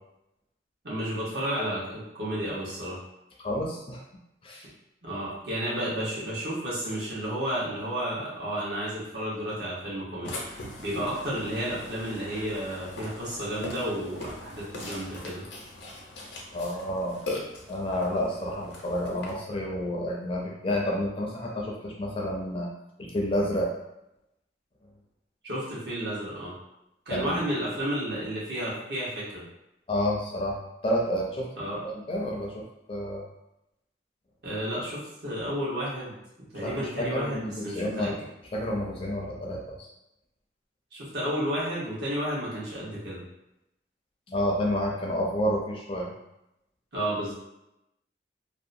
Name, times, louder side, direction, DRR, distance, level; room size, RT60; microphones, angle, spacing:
voice 1, 0.8-3.0 5.0-10.4 10.8-15.4 25.4-26.5 27.1-29.4 31.6-31.8 34.4-36.1 36.5-38.1 40.9-43.2 46.9-47.3, equal, 70° right, -7 dB, 1.0 m, -32 dB
voice 2, 3.4-4.0 4.4-4.7 16.5-17.2 17.7-22.7 23.0-23.7 27.1-27.5 29.9-31.5 31.8-33.3 36.6-38.1 38.5-39.9 44.3-46.1, equal, 30° left, -2 dB, 0.4 m, -30 dB
Burping eructation, 10.2-19.3, left 2 dB, 90° left, 0.6 m, -40 dB
2.7 x 2.1 x 2.5 m, 0.88 s
head